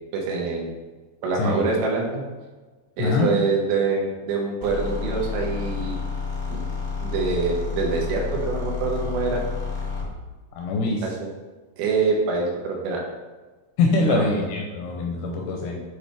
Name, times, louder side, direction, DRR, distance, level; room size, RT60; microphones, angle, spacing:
voice 1, 0.1-0.7 1.2-2.2 3.0-6.0 6.5-6.7 7.0-9.4 11.0-11.3 11.8-13.0 14.1-14.3, right 4 dB, 85° right, -1 dB, 3.7 m, -25 dB
voice 2, 3.0-3.4 10.6-11.1 13.8-15.8, left 3 dB, 85° left, 1 dB, 2.3 m, -23 dB
sound 1, 4.6-10.2, left 4 dB, 55° left, 0.7 m, -30 dB
9.7 x 4.3 x 3.4 m, 1.3 s
omnidirectional pair, 5.5 m